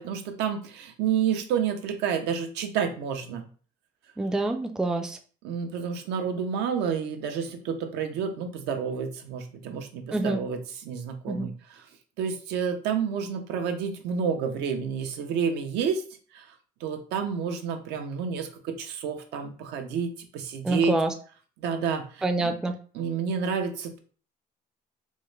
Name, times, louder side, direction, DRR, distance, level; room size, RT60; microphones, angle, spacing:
voice 1, 0.0-3.5 5.4-11.9 12.2-16.0 16.3-16.5 16.8-20.9 21.6-22.6 22.9-24.0, right 6 dB, 85° right, 5 dB, 0.6 m, -30 dB
voice 2, 4.2-5.2 10.1-10.4 11.3-11.5 20.6-21.1 22.2-22.8, right 2 dB, 5° right, 5 dB, 0.3 m, -26 dB
3.6 x 2.1 x 3.1 m, 0.42 s
cardioid pair, 110°, 17 cm